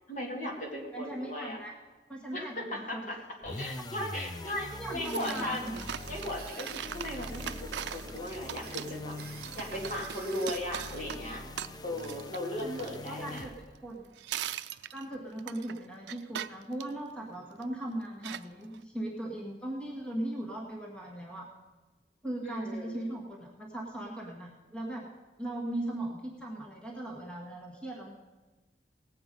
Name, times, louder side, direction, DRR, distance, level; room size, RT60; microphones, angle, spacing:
voice 1, 0.0-1.6 2.3-3.2 3.4-5.7 6.1-9.2 9.5-11.4 11.8-13.5 22.4-23.1, left 1 dB, 45° left, 0 dB, 2.5 m, -37 dB
voice 2, 0.9-1.7 2.1-3.1 4.7-5.7 12.6-13.5 13.8-14.1 14.9-21.5 22.2-25.1 25.4-28.1, right 1 dB, 5° left, -2 dB, 1.5 m, -38 dB
sound 1, 3.4-13.8, left 2 dB, 25° left, 0.4 m, -43 dB
sound 2, 5.0-13.9 14.2-17.7 18.2-18.8, right 10 dB, 80° right, 0.4 m, -41 dB
sound 3, 5.1-10.6, right 6 dB, 60° right, 0.9 m, -51 dB
18.5 x 7.9 x 5.3 m, 1.2 s
head